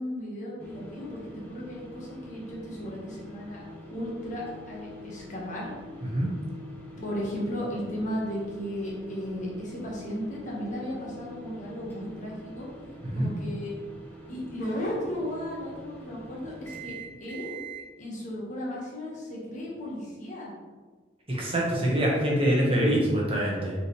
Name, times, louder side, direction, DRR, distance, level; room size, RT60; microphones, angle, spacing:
voice 1, 0.0-3.6 3.9-5.7 7.0-12.7 13.1-13.8 14.3-17.5 18.0-20.5, equal, 45° left, -4 dB, 1.6 m, -35 dB
sound 1, 0.6-17.9, equal, 10° left, 1.1 m, -45 dB
voice 2, 21.3-23.7, equal, 30° right, -4 dB, 1.5 m, -25 dB
5.8 x 4.9 x 3.3 m, 1.4 s
head